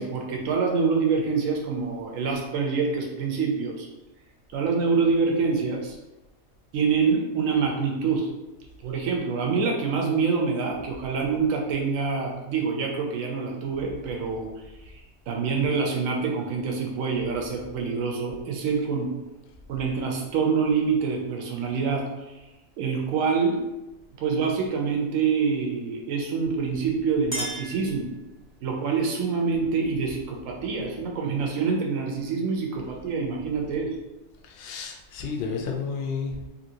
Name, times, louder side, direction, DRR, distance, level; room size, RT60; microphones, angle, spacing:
voice 1, 0.0-3.9 4.5-6.0 6.7-8.3 8.8-14.5 14.9-15.0 15.3-19.1 19.7-22.4 22.8-23.6 24.2-28.1 28.6-33.9, right 5 dB, 80° right, 0 dB, 1.0 m, -26 dB
Chink clink, 26.8-28.6, right 1 dB, 20° left, 0.8 m, -37 dB
voice 2, 34.4-36.5, left 5 dB, 65° left, 2 dB, 0.6 m, -31 dB
2.8 x 2.6 x 2.7 m, 1.0 s
omnidirectional pair, 1.4 m